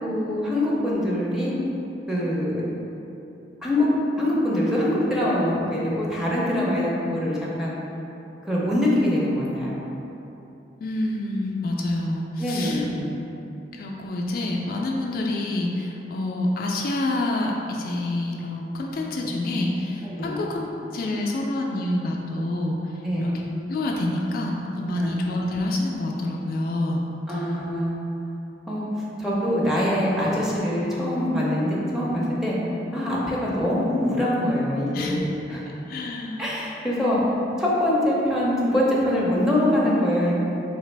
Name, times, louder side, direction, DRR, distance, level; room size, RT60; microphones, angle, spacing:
voice 1, 0.0-1.5 2.1-2.6 3.6-3.9 4.2-7.7 8.4-9.8 12.4-13.0 20.1-20.4 23.0-23.3 25.0-25.1 27.3-28.0 28.7-32.6 32.9-35.7 36.4-37.2 37.6-40.3, left 1 dB, 5° right, -7 dB, 0.6 m, -24 dB
voice 2, 10.8-12.9 13.7-23.4 23.7-27.0 34.9-35.2 35.9-36.5 37.0-37.3, left 1 dB, 55° left, -1 dB, 0.3 m, -27 dB
3.9 x 2.8 x 3.3 m, 2.9 s
head